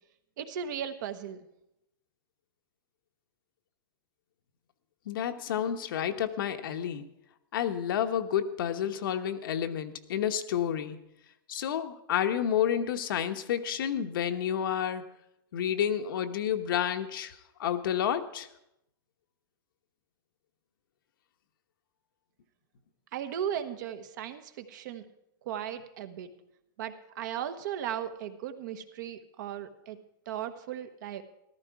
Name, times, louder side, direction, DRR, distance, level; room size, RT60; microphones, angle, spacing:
voice 1, 0.4-1.4 23.1-25.0 25.4-26.3 26.8-30.0 30.3-31.2, right 9 dB, 55° right, 9 dB, 1.2 m, -36 dB
voice 2, 5.1-7.1 7.5-11.0 11.5-15.1 15.5-18.5, left 9 dB, 70° left, 7 dB, 1.1 m, -30 dB
14.0 x 13.5 x 4.8 m, 0.83 s
supercardioid pair, 160°, 12 cm